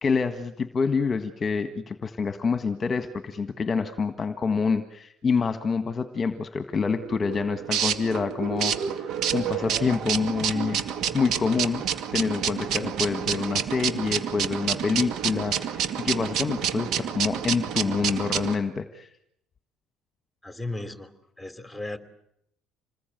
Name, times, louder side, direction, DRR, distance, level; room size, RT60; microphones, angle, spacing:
voice 1, 0.0-10.8 11.1-11.8 12.1-19.1, left 5 dB, 25° left, 10 dB, 1.6 m, -27 dB
sound 1, 7.0-18.5, right 8 dB, 55° right, 2.4 m, -29 dB
voice 2, 20.4-21.1 21.4-22.0, left 2 dB, 5° left, 11 dB, 3.0 m, -35 dB
27.5 x 20.5 x 9.2 m, 0.76 s
cardioid pair, 130°, 0 cm